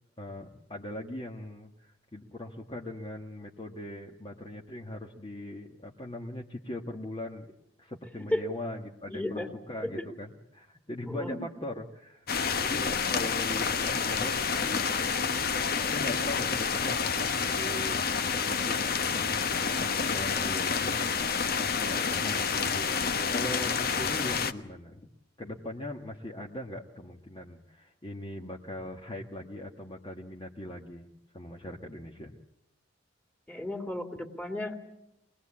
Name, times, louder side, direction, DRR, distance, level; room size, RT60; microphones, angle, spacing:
voice 1, 0.2-7.5 7.8-12.3 12.6-15.2 15.9-25.1 25.4-31.1 31.3-32.4, left 1 dB, 30° left, 0 dB, 1.5 m, -40 dB
voice 2, 9.1-9.5 9.8-9.9 11.0-11.4 33.5-34.8, left 1 dB, 10° left, 5 dB, 2.8 m, -33 dB
sound 1, 12.3-24.5, left 6 dB, 55° left, 1.1 m, -29 dB
25.0 x 20.0 x 8.6 m, 0.83 s
head